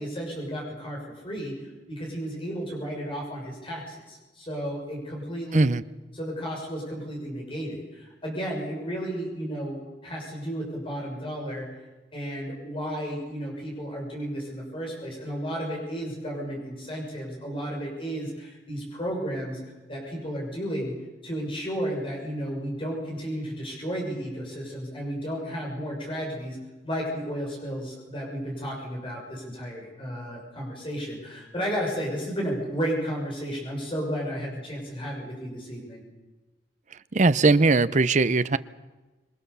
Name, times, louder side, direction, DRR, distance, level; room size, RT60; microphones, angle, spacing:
voice 1, 0.0-1.5 1.9-5.6 6.1-11.7 12.1-19.6 19.9-20.9 21.2-26.6 26.8-36.0, equal, 30° left, 6.6 m, -33 dB
voice 2, 5.5-5.8 37.1-38.6, right 3 dB, 45° right, 0.7 m, -20 dB
26.0 x 23.5 x 7.0 m
head